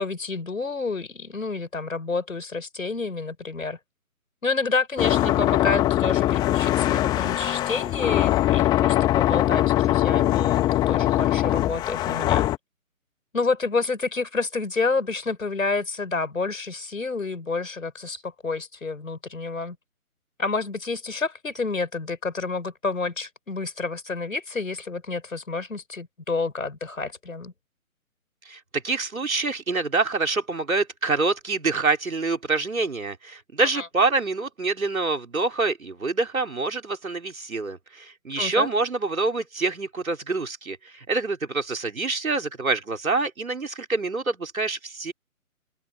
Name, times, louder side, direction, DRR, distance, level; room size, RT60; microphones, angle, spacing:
voice 1, 0.0-3.8 4.4-12.5 13.3-19.8 20.4-27.5 33.6-33.9 38.4-38.7, left 4 dB, 65° left, 6.0 m, -29 dB
sound 1, 5.0-12.6, left 14 dB, 10° left, 2.3 m, -22 dB
voice 2, 28.5-45.1, right 3 dB, 70° right, 4.4 m, -26 dB
open air
figure-of-eight pair, 145°, 43 cm